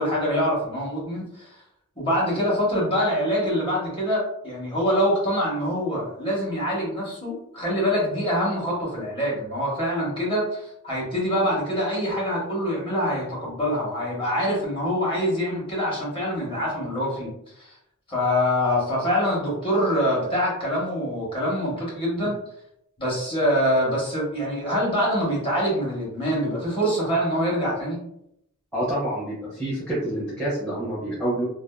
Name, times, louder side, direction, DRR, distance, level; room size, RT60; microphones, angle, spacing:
voice 1, 0.0-1.6 2.0-17.3 17.6-17.7 18.1-22.4 23.0-28.0, equal, 25° left, -5 dB, 1.0 m, -25 dB
voice 2, 28.7-31.4, right 1 dB, 5° left, -10 dB, 0.7 m, -27 dB
2.6 x 2.2 x 2.2 m, 0.78 s
head